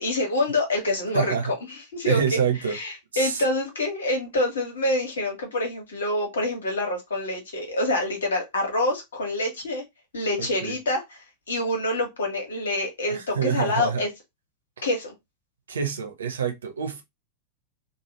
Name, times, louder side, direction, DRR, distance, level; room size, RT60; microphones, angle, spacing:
voice 1, 0.0-1.3 1.7-2.4 2.7-9.8 10.1-11.0 11.5-14.1 14.8-15.1, left 2 dB, 65° left, 1.3 m, -26 dB
voice 2, 1.1-1.5 2.0-2.8 3.1-3.4 10.4-10.7 13.0-14.1 15.7-17.0, right 7 dB, 70° right, 0.8 m, -27 dB
3.3 x 2.3 x 3.0 m
figure-of-eight pair, 90°, 0 cm